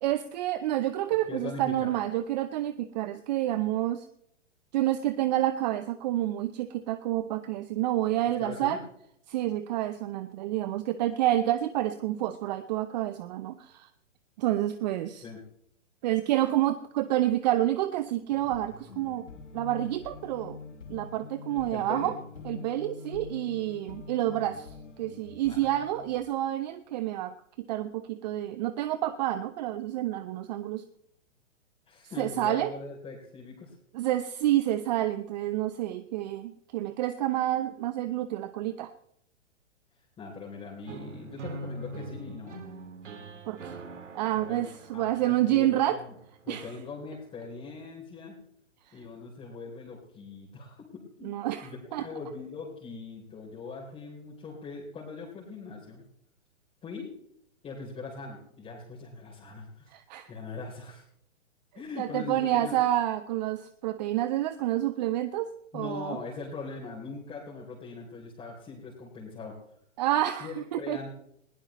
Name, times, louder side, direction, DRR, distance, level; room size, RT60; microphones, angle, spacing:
voice 1, 0.0-4.1 4.7-8.8 9.3-13.9 14.4-15.2 16.0-19.3 19.5-20.6 20.9-22.1 22.5-27.3 27.7-30.8 32.2-32.7 33.9-38.9 43.5-43.8 44.1-46.0 46.5-46.6 51.2-52.0 59.9-60.3 62.0-66.2 70.0-71.0, right 13 dB, 35° right, 12 dB, 0.7 m, -29 dB
voice 2, 1.3-1.9 8.4-8.8 15.2-15.4 21.5-22.1 25.5-25.6 31.9-33.8 40.2-42.6 44.4-44.6 44.9-46.1 46.4-48.4 48.9-56.0 56.8-57.1 57.6-59.9 60.3-61.0 61.7-62.8 65.7-69.6 70.4-71.1, left 4 dB, 15° left, -4 dB, 3.4 m, -41 dB
sound 1, 18.3-26.2, left 4 dB, 80° left, 2.0 m, -45 dB
sound 2, 40.9-46.8, right 2 dB, 75° right, 2.2 m, -43 dB
20.5 x 16.5 x 3.1 m, 0.72 s
hypercardioid pair, 125°, 37 cm